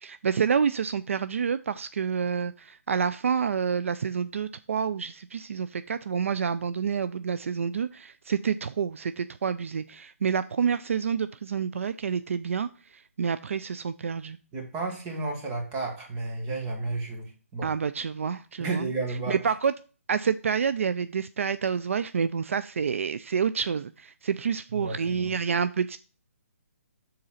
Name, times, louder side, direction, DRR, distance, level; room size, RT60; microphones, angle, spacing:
voice 1, 0.0-14.4 17.6-18.9 19.3-19.7 20.1-26.0, right 6 dB, 60° right, 13 dB, 0.3 m, -28 dB
voice 2, 14.5-17.7 18.6-19.5 24.7-25.3, right 3 dB, 15° right, 1 dB, 1.2 m, -32 dB
6.6 x 3.9 x 5.6 m, 0.36 s
hypercardioid pair, 165°, 8 cm